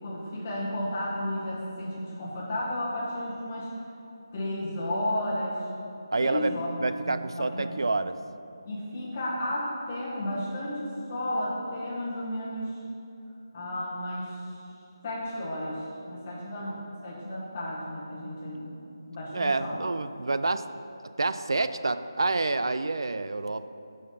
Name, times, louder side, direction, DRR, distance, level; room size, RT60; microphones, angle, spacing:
voice 1, 0.0-3.7 4.3-5.6 6.2-7.9 8.7-12.8 13.5-14.6 15.0-18.7 19.1-19.8, left 1 dB, 20° left, -7 dB, 1.1 m, -33 dB
voice 2, 6.1-6.5 6.8-8.1 19.3-20.7 21.2-23.7, right 3 dB, 80° right, 12 dB, 0.4 m, -28 dB
5.8 x 5.3 x 5.5 m, 2.7 s
figure-of-eight pair, 180°, 2 cm